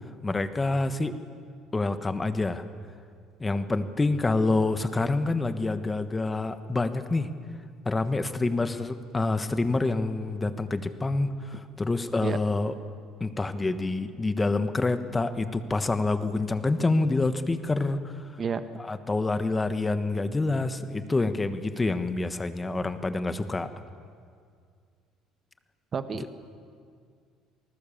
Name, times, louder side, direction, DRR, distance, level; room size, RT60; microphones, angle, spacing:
voice 1, 0.2-1.1 1.7-2.6 3.4-7.3 7.8-12.7 13.2-18.2 18.9-23.7, left 3 dB, 15° left, 10 dB, 1.3 m, -27 dB
voice 2, 25.9-26.4, right 6 dB, 35° right, 10 dB, 1.4 m, -30 dB
28.0 x 20.0 x 7.3 m, 2.2 s
cardioid pair, 120°, 0 cm